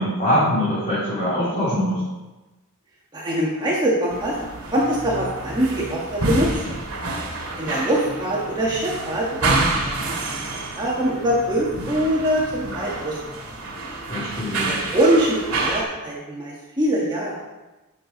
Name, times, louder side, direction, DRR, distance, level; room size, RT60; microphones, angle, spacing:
voice 1, 0.0-2.0 14.0-14.8, equal, 35° left, -11 dB, 3.6 m, -23 dB
voice 2, 3.1-4.4 4.7-6.8 7.6-13.2 14.6-17.3, right 1 dB, 20° right, -6 dB, 1.6 m, -23 dB
sound 1, 4.1-15.8, right 2 dB, 65° right, 2.3 m, -28 dB
10.0 x 7.0 x 5.2 m, 1.1 s
head